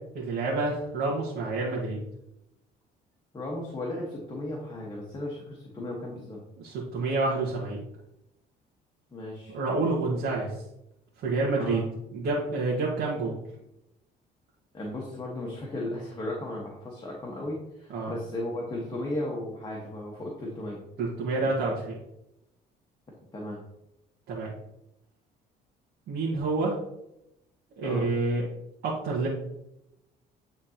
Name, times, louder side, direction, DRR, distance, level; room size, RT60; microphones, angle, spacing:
voice 1, 0.1-2.0 6.6-7.8 9.5-10.5 11.2-11.8 12.1-13.4 17.9-18.1 21.0-22.0 24.3-24.5 26.1-26.8 27.8-28.4 28.8-29.3, right 3 dB, 70° right, -5 dB, 1.7 m, -28 dB
voice 2, 3.3-6.4 9.1-9.6 11.5-11.8 14.7-20.8 21.6-21.7 23.3-23.6 27.8-28.0, left 1 dB, 25° left, -3 dB, 1.5 m, -35 dB
10.0 x 3.8 x 3.0 m, 0.85 s
cardioid pair, 110°, 17 cm